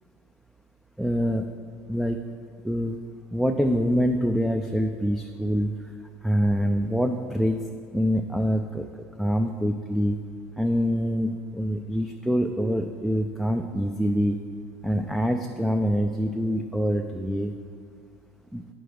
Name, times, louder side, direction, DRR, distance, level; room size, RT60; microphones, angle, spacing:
voice 1, 1.0-1.5 1.9-2.2 2.6-3.0 3.3-5.9 6.2-8.9 9.2-10.2 10.6-14.4 14.8-17.5 18.5-18.6, equal, ahead, 5 dB, 0.3 m, -25 dB
8.6 x 6.3 x 3.3 m, 2.1 s
supercardioid pair, 115°, 6 cm